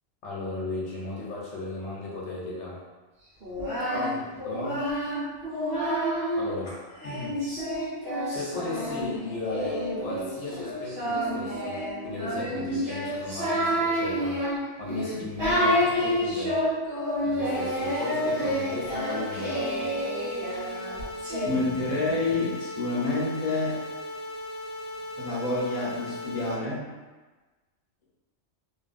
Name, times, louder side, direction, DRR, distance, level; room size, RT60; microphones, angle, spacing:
voice 1, 0.2-2.8 4.5-4.8 6.3-6.8 7.0-7.4 8.3-14.4 14.8-16.6 17.2-19.9, left 2 dB, 80° left, -5 dB, 1.0 m, -36 dB
Singing, 3.4-6.4 7.0-21.5, equal, 60° right, 1.3 m, -29 dB
voice 2, 3.9-4.2 21.4-23.8 25.2-26.8, left 2 dB, 35° left, -7 dB, 0.8 m, -28 dB
sound 1, 17.5-26.5, left 1 dB, 40° right, 1.4 m, -38 dB
2.8 x 2.4 x 2.4 m, 1.3 s
omnidirectional pair, 1.2 m